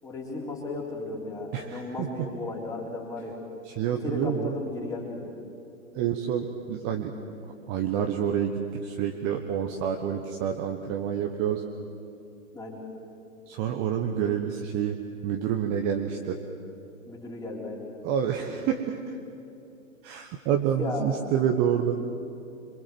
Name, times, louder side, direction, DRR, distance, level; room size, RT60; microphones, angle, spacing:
voice 1, 0.0-3.4 4.0-5.3 5.9-6.1 12.5-12.8 17.1-17.9 20.8-21.1, left 3 dB, 10° left, -1 dB, 3.8 m, -35 dB
voice 2, 1.5-2.3 3.6-4.5 5.9-7.1 7.7-11.6 13.5-16.4 18.0-19.2 20.0-22.0, right 9 dB, 25° right, 3 dB, 1.2 m, -28 dB
26.5 x 23.0 x 7.8 m, 2.6 s
figure-of-eight pair, 125°, 42 cm